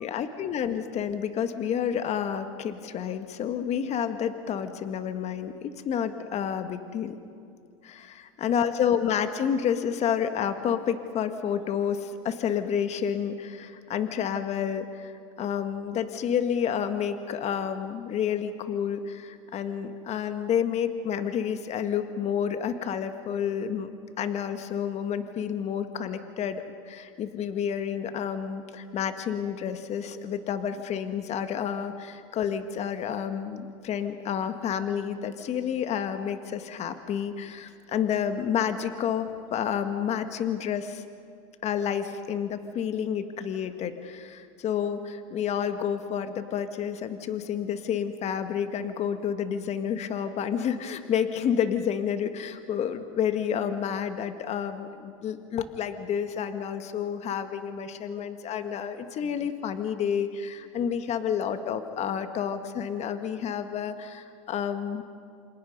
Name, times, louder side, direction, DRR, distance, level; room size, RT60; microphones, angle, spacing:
voice 1, 0.0-7.2 7.8-23.9 24.2-41.1 41.6-65.0, left 8 dB, 40° left, 9 dB, 1.7 m, -30 dB
28.0 x 26.5 x 5.4 m, 2.3 s
hypercardioid pair, 95°, 17 cm